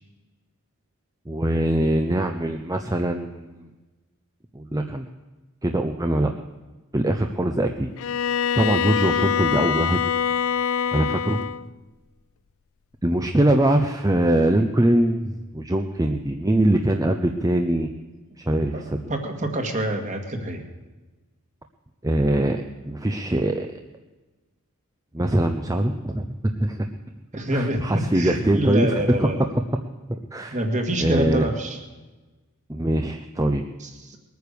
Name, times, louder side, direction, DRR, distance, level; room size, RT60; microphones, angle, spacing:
voice 1, 1.3-3.5 4.5-5.1 5.6-6.3 6.9-7.9 8.5-10.0 10.9-11.4 13.0-17.9 18.4-19.0 22.0-23.8 25.1-26.9 27.5-28.9 29.2-29.3 30.3-30.6 31.0-31.5 32.7-33.6, right 1 dB, 15° right, 5 dB, 0.7 m, -22 dB
Bowed string instrument, 8.0-11.7, left 8 dB, 60° left, 0.4 m, -24 dB
voice 2, 18.7-20.6 27.3-29.4 30.5-31.8 33.8-34.2, right 1 dB, 35° right, 4 dB, 2.0 m, -26 dB
21.0 x 9.3 x 6.9 m, 1.2 s
head